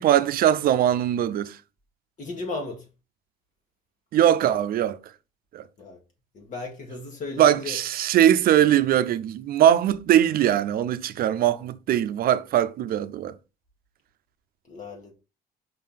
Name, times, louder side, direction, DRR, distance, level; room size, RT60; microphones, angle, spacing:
voice 1, 0.0-1.6 4.1-5.0 5.5-5.6 7.4-13.3, right 11 dB, 60° right, 0.6 m, -21 dB
voice 2, 2.2-2.9 5.8-6.0 6.3-7.8 14.7-15.1, left 3 dB, 50° left, 1.8 m, -35 dB
5.6 x 3.7 x 5.7 m
cardioid pair, 110°, 17 cm